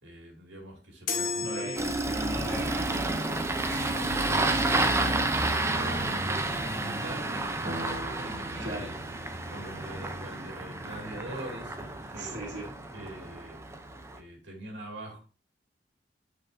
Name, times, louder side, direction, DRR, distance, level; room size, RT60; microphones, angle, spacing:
voice 1, 0.0-1.9 3.9-4.6 5.1-8.9 9.5-12.4 12.9-13.6 14.1-15.2, right 1 dB, 90° right, 0 dB, 2.5 m, -42 dB
sound 1, 1.1-2.6, left 4 dB, 50° left, 1.2 m, -33 dB
voice 2, 1.4-3.9 4.4-4.7 8.5-8.9 12.1-12.7, right 1 dB, 65° right, -4 dB, 2.2 m, -40 dB
Engine starting, 1.8-14.2, right 2 dB, 15° right, 0.6 m, -30 dB
sound 2, 7.6-11.8, right 1 dB, 50° right, 1.8 m, -44 dB
9.5 x 5.7 x 2.7 m, 0.36 s
head